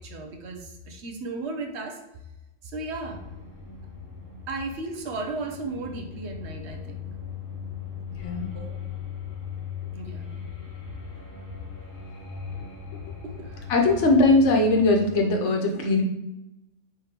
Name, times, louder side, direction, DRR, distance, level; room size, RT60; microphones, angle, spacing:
voice 1, 0.0-2.0 2.6-3.3 4.5-6.9 8.5-8.8 9.9-10.5 13.2-13.7, right 3 dB, 70° right, 3 dB, 1.0 m, -35 dB
sound 1, 3.0-15.2, left 7 dB, 50° left, 1.9 m, -39 dB
voice 2, 8.2-8.5 13.7-16.0, left 2 dB, 80° left, 2 dB, 1.2 m, -20 dB
4.9 x 3.6 x 2.9 m, 0.93 s
omnidirectional pair, 1.2 m